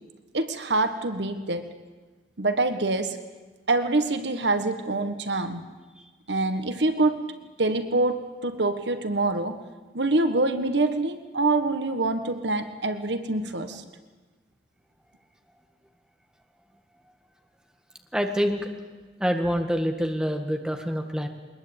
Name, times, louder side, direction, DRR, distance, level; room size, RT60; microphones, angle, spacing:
voice 1, 0.3-1.7 2.4-3.2 3.7-5.6 6.3-7.3 7.6-9.6 9.9-13.8, right 2 dB, 80° right, 9 dB, 1.6 m, -25 dB
voice 2, 18.1-18.8 19.2-21.3, equal, 5° right, 4 dB, 1.8 m, -26 dB
21.5 x 20.5 x 8.8 m, 1.3 s
head